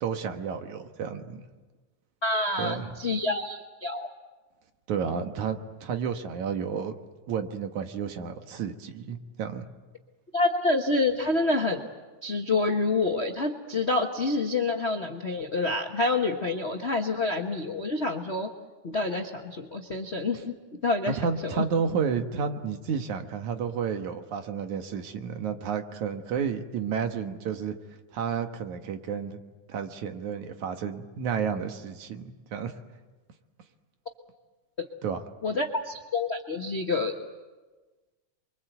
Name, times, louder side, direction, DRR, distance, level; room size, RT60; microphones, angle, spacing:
voice 1, 0.0-1.4 2.6-2.9 4.9-6.9 7.3-9.6 21.2-27.7 28.1-29.4 29.7-32.7 35.0-35.2, right 6 dB, 75° right, 6 dB, 2.9 m, -31 dB
voice 2, 2.2-4.1 10.3-11.8 12.2-18.5 18.8-20.5 20.8-21.2 21.4-21.6 34.8-34.9 35.4-37.1, left 3 dB, 60° left, 3 dB, 0.6 m, -27 dB
29.0 x 24.0 x 8.1 m, 1.3 s
omnidirectional pair, 3.4 m